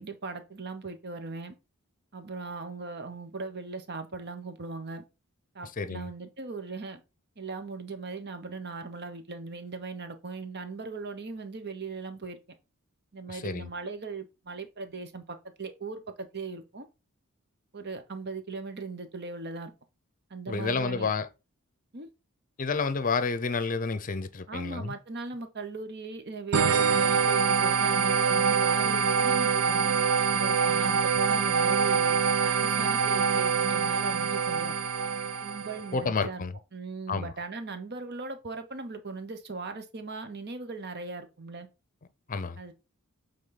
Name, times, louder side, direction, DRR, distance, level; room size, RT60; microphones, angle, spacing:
voice 1, 0.0-1.5 2.1-5.0 5.5-7.0 7.4-12.6 13.1-15.2 15.6-16.9 17.7-19.7 20.3-21.1 21.9-22.1 24.5-29.9 30.3-34.7 35.4-36.4 36.7-41.7 42.6-42.7, right 4 dB, 50° right, 1.1 m, -39 dB
voice 2, 5.8-6.1 13.3-13.7 20.5-21.3 22.6-24.9 35.9-36.5 37.1-37.3 42.3-42.6, left 4 dB, 40° left, 0.7 m, -30 dB
sound 1, 26.5-35.9, right 6 dB, 80° right, 0.8 m, -25 dB
8.3 x 3.9 x 4.0 m
head